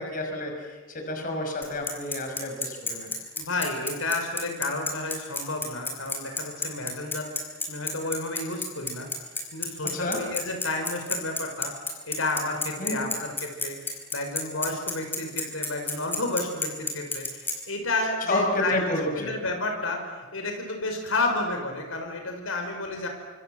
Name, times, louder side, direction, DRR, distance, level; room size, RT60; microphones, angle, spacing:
voice 1, 0.0-3.1 9.9-10.2 12.8-13.1 18.3-19.4, left 1 dB, 40° left, 3 dB, 5.5 m, -30 dB
Bicycle, 1.6-17.5, left 3 dB, 10° left, 4.7 m, -30 dB
voice 2, 3.3-9.1 9.5-11.8 12.1-13.8 14.1-18.8 19.2-20.1 20.3-23.1, left 2 dB, 85° left, 4 dB, 5.2 m, -31 dB
29.0 x 26.5 x 7.8 m, 1.3 s
head